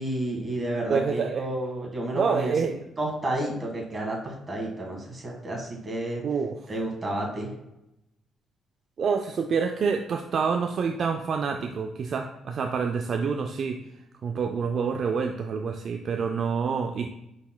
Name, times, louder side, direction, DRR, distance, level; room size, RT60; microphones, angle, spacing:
voice 1, 0.0-2.5 3.0-6.2 6.7-7.5, right 1 dB, 30° right, -1 dB, 1.6 m, -31 dB
voice 2, 0.9-1.5 2.1-2.7 6.2-6.6 9.0-13.8 14.2-17.1, right 5 dB, 55° right, 4 dB, 0.3 m, -27 dB
5.3 x 4.1 x 2.2 m, 0.86 s
cardioid pair, 90°, 0 cm